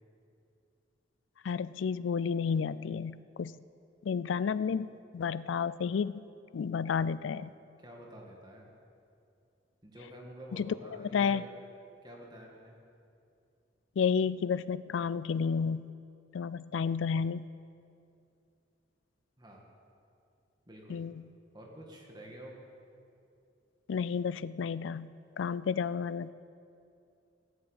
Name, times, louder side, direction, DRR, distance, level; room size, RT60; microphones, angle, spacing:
voice 1, 1.4-3.5 4.0-6.2 6.5-7.5 10.5-11.4 14.0-15.9 16.3-17.5 20.9-21.2 23.9-25.1 25.4-26.3, left 6 dB, 85° left, 17 dB, 0.4 m, -31 dB
voice 2, 7.8-8.7 9.8-11.5 12.0-12.8 19.4-19.6 20.7-21.0 21.5-22.6, equal, 25° right, -1 dB, 1.8 m, -49 dB
16.0 x 7.6 x 8.1 m, 2.6 s
head